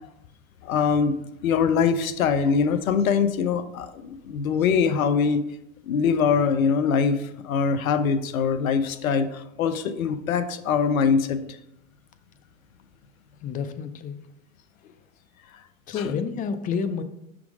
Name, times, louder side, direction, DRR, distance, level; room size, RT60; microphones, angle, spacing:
voice 1, 0.6-1.2 1.4-5.4 5.8-11.4 16.0-16.1, left 6 dB, 80° left, 11 dB, 0.6 m, -23 dB
voice 2, 13.4-14.2 15.9-17.0, left 6 dB, 20° left, 10 dB, 0.3 m, -29 dB
5.8 x 3.7 x 4.8 m, 0.84 s
hypercardioid pair, 90°, 41 cm